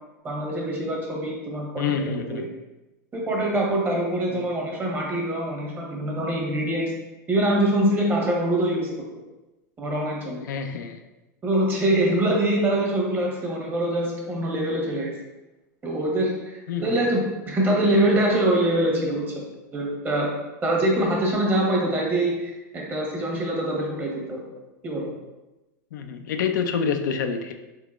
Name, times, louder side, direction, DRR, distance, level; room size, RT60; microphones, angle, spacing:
voice 1, 0.2-2.4 3.1-6.9 7.3-8.9 9.8-10.4 11.4-15.1 15.8-19.2 19.7-20.3 20.6-24.4 24.8-25.1, right 1 dB, 20° right, -2 dB, 1.0 m, -24 dB
voice 2, 1.8-2.5 4.3-4.4 10.5-11.0 16.7-17.0 25.9-27.5, left 6 dB, 85° left, 6 dB, 0.4 m, -27 dB
3.7 x 3.5 x 2.4 m, 1.0 s
hypercardioid pair, 115°, 10 cm